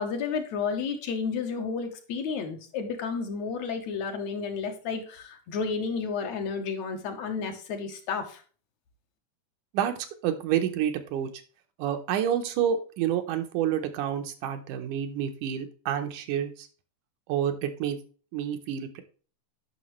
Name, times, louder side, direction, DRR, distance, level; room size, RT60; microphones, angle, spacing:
voice 1, 0.0-8.4, left 5 dB, 70° left, 4 dB, 2.1 m, -31 dB
voice 2, 10.2-11.3 11.8-16.7 17.3-18.0 18.3-19.0, right 9 dB, 80° right, 7 dB, 2.4 m, -28 dB
9.8 x 5.9 x 3.1 m, 0.38 s
omnidirectional pair, 3.5 m